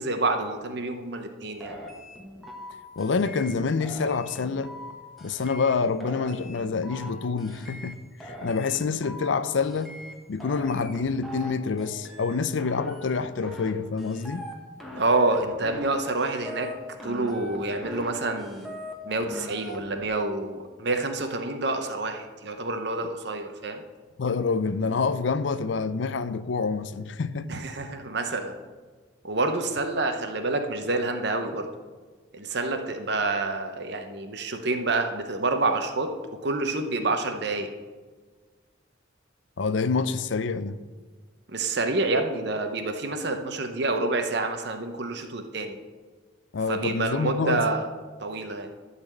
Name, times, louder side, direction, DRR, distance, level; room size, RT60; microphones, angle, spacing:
voice 1, 0.0-1.8 15.0-16.7 17.0-18.8 19.0-23.8 27.5-28.5 29.2-31.7 32.3-36.1 36.4-37.7 41.5-45.8 46.7-47.9 48.2-48.7, right 2 dB, 55° right, 0.8 m, -28 dB
sound 1, 1.6-2.7 3.0-3.5 3.8-4.9 5.2-5.7 6.0-7.1 7.4-7.9 8.2-9.3 9.6-10.1 10.4-11.5 11.8-12.3 12.6-13.7 14.0-14.5 14.8-15.9 16.2-16.7 17.0-18.1 18.4-18.9 19.2-20.1, equal, ahead, 1.3 m, -41 dB
voice 2, 3.0-4.7 5.2-9.9 10.3-14.5 24.2-27.5 39.6-40.8 46.5-47.7, left 4 dB, 70° left, 0.5 m, -27 dB
12.0 x 4.1 x 7.5 m
head